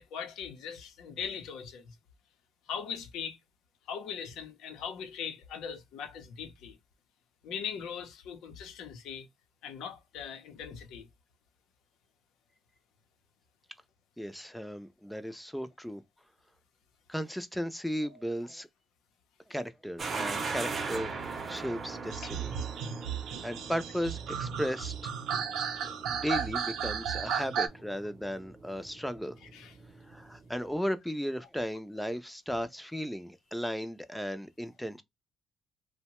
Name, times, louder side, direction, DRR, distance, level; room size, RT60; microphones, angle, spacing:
voice 1, 0.0-2.0 2.7-3.4 3.9-6.8 7.4-9.3 9.6-11.1 18.0-18.2 29.5-29.7, left 7 dB, 85° left, 0.7 m, -40 dB
voice 2, 14.2-16.0 17.1-18.7 19.5-22.5 23.0-25.1 25.8-29.4 30.0-35.0, equal, ahead, 0.4 m, -36 dB
sound 1, 20.0-30.7, right 4 dB, 45° right, 0.7 m, -41 dB
sound 2, 22.1-27.7, right 7 dB, 85° right, 0.5 m, -34 dB
2.7 x 2.1 x 2.9 m
cardioid pair, 90°, 0 cm